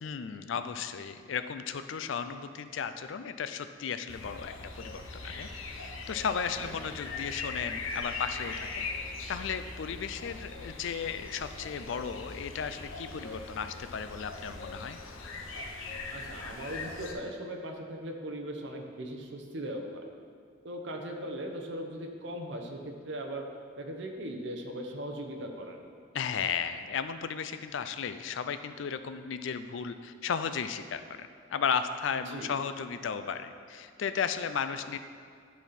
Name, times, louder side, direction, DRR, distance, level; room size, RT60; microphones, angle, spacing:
voice 1, 0.0-8.9 9.3-15.0 26.1-35.0, left 6 dB, 65° left, 10 dB, 0.4 m, -35 dB
sound 1, 4.1-17.1, left 3 dB, 80° left, 0.8 m, -40 dB
voice 2, 16.1-20.1 20.6-23.5 23.8-25.8 32.3-32.5, right 1 dB, 60° right, 3 dB, 0.8 m, -39 dB
11.0 x 4.2 x 4.1 m, 2.2 s
head